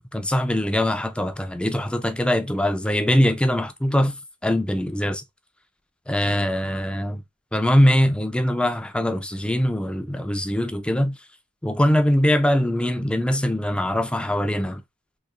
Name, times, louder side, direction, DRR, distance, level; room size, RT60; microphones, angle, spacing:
voice 1, 0.1-4.1 4.4-5.2 6.1-7.1 7.5-11.1 11.6-14.8, equal, 5° left, 0.3 m, -22 dB
4.1 x 2.8 x 2.3 m
head